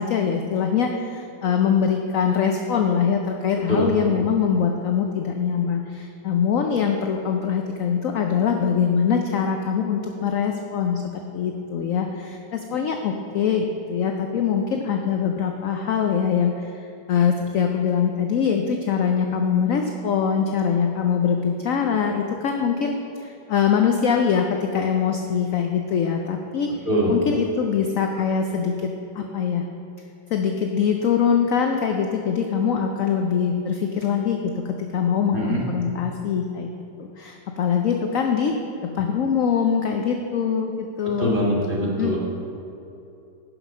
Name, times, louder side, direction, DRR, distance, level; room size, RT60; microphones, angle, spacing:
voice 1, 0.0-11.0 11.3-26.7 27.1-29.6 30.3-36.7 37.0-41.3 42.0-42.2, left 7 dB, 75° left, 3 dB, 0.7 m, -23 dB
voice 2, 41.2-42.2, equal, 30° right, -5 dB, 1.8 m, -22 dB
10.5 x 6.0 x 5.4 m, 2.8 s
omnidirectional pair, 2.0 m